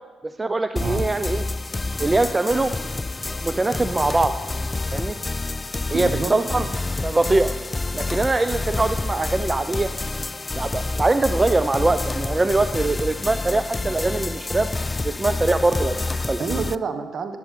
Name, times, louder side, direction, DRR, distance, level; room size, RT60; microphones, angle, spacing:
voice 1, 0.2-1.4 2.0-2.7 3.4-4.3 4.9-5.2 5.9-6.7 7.0-7.5 7.9-9.9 10.5-14.7 15.0-16.4, right 2 dB, 30° right, 10 dB, 0.5 m, -22 dB
sound 1, 0.8-16.8, left 3 dB, 30° left, 0.3 m, -28 dB
voice 2, 5.9-6.7 16.4-17.4, right 5 dB, 60° right, 7 dB, 1.2 m, -28 dB
12.5 x 10.5 x 3.7 m, 1.4 s
supercardioid pair, 50°, 0 cm